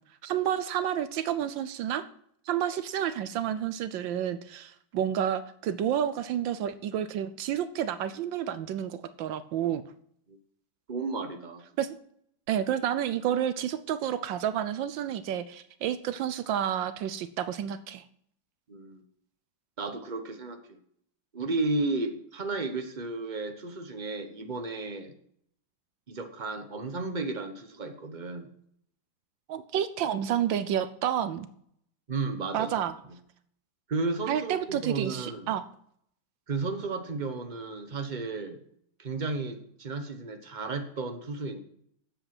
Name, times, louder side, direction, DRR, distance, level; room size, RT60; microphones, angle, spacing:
voice 1, 0.2-2.0 2.5-9.8 11.8-11.9 12.5-18.0 29.5-31.5 32.5-32.9 34.3-35.6, right 10 dB, 75° right, 13 dB, 1.3 m, -30 dB
voice 2, 10.9-11.6 18.7-19.0 19.8-20.8 21.3-25.1 26.1-28.5 32.1-32.7 33.9-35.5 36.5-38.6 39.0-41.6, right 3 dB, 30° right, 7 dB, 0.8 m, -33 dB
11.5 x 7.9 x 5.9 m, 0.68 s
omnidirectional pair, 2.2 m